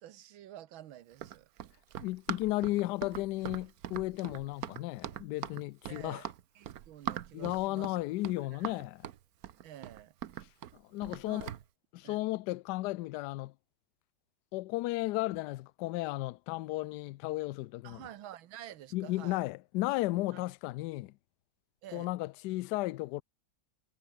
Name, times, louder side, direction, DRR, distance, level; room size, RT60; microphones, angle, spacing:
voice 1, 0.0-1.5 5.9-6.3 6.6-8.0 8.5-8.8 9.6-10.1 11.3-11.6 12.0-12.2 17.8-19.4 21.8-22.1, right 12 dB, 85° right, 1.8 m, -49 dB
Run, 1.1-11.6, right 11 dB, 55° right, 1.2 m, -42 dB
voice 2, 2.0-6.3 7.3-9.1 10.7-11.5 11.9-13.5 14.5-18.0 18.9-21.1 21.9-23.2, left 18 dB, 75° left, 1.0 m, -34 dB
omnidirectional pair, 2.1 m